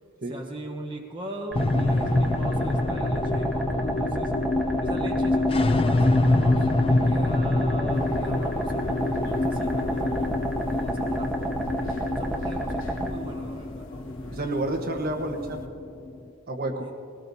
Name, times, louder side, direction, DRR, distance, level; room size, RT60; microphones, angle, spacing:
voice 1, 0.3-4.3 4.8-10.3 10.6-13.9 16.8-16.9, right 1 dB, 25° right, -1 dB, 1.0 m, -39 dB
sound 1, 1.5-16.2, left 2 dB, 25° left, 0.3 m, -26 dB
sound 2, 1.5-13.1, right 2 dB, ahead, 1.1 m, -31 dB
sound 3, 7.9-15.7, left 1 dB, 60° left, 1.3 m, -44 dB
voice 2, 14.3-15.7 16.5-16.9, right 1 dB, 45° right, 3 dB, 1.2 m, -29 dB
20.0 x 18.0 x 2.8 m, 2.5 s
head